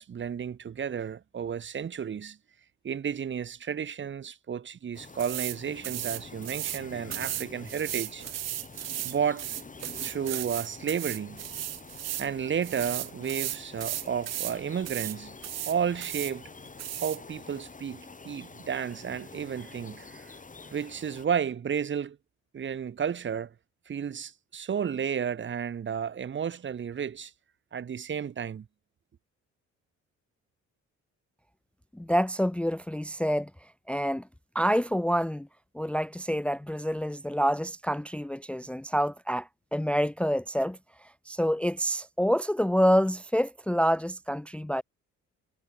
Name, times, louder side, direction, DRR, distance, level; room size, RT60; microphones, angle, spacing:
voice 1, 0.0-2.4 2.8-8.2 9.0-9.5 10.0-11.4 12.2-15.4 15.7-16.4 17.0-20.3 20.7-22.2 22.5-23.5 23.9-27.3 27.7-28.7, right 7 dB, 40° right, 1.2 m, -32 dB
sound 1, 4.9-21.3, left 4 dB, 25° left, 8.0 m, -47 dB
sound 2, 5.2-5.6 5.8-6.8 7.1-12.3 12.6-14.6 14.9-15.2 15.4-16.3 16.8-17.2, right 13 dB, 60° right, 0.8 m, -35 dB
voice 2, 31.9-33.5 33.9-34.2 34.5-35.5 35.7-40.8 41.3-44.8, equal, 5° left, 0.6 m, -27 dB
cardioid pair, 90°, 30 cm